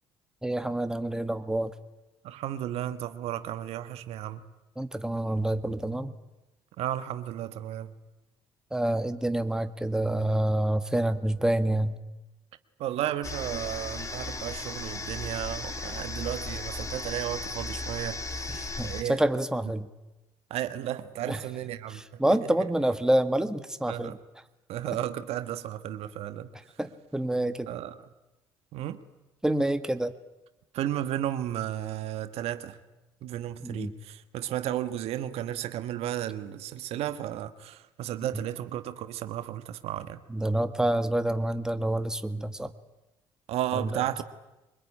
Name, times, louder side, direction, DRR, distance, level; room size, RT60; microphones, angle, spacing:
voice 1, 0.4-1.7 4.8-6.1 8.7-12.0 18.5-19.9 21.3-21.4 21.9-24.2 26.8-27.7 29.4-30.1 33.6-33.9 38.3-38.4 40.3-42.7 43.7-44.0, right 1 dB, 5° right, 1.7 m, -27 dB
voice 2, 2.2-4.4 6.8-8.0 12.8-18.2 18.8-19.2 20.5-22.5 23.9-24.2 24.7-26.5 27.7-27.9 28.7-29.0 30.7-32.8 33.2-40.2 43.5-44.2, right 12 dB, 70° right, 1.4 m, -33 dB
sound 1, 13.2-19.0, left 3 dB, 30° left, 3.2 m, -36 dB
24.0 x 21.0 x 9.9 m
supercardioid pair, 70°, 11 cm